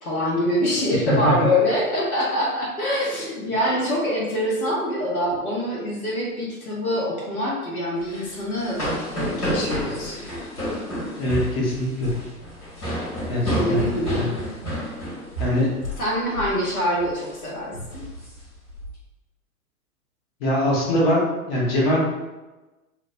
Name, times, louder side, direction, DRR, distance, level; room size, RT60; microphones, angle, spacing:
voice 1, 0.0-8.8 9.1-10.3 13.5-14.3 16.0-18.0, left 1 dB, 70° left, -4 dB, 1.1 m, -25 dB
voice 2, 1.1-1.5 11.2-12.1 13.3-13.8 14.1-14.3 15.4-15.7 20.4-22.0, left 1 dB, 40° left, -5 dB, 1.2 m, -22 dB
sound 1, 8.0-16.1 16.3-16.6 17.0-17.3 17.8-18.9, equal, 90° left, 1.4 m, -30 dB
3.0 x 2.6 x 2.5 m, 1.1 s
figure-of-eight pair, 110°, 45 cm